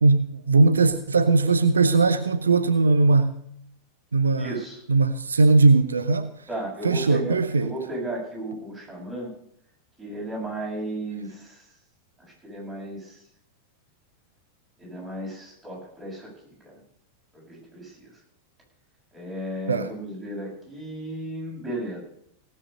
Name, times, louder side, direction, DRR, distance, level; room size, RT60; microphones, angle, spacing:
voice 1, 0.0-3.4 4.1-4.6 4.9-6.3 6.8-7.7 19.7-19.9, right 3 dB, 75° right, 10 dB, 0.7 m, -19 dB
voice 2, 4.4-4.8 6.5-9.3 10.0-11.7 12.4-13.2 14.8-16.8 17.3-18.1 19.1-22.0, right 1 dB, 10° right, -4 dB, 7.8 m, -34 dB
17.5 x 7.9 x 6.6 m, 0.70 s
figure-of-eight pair, 90°, 0 cm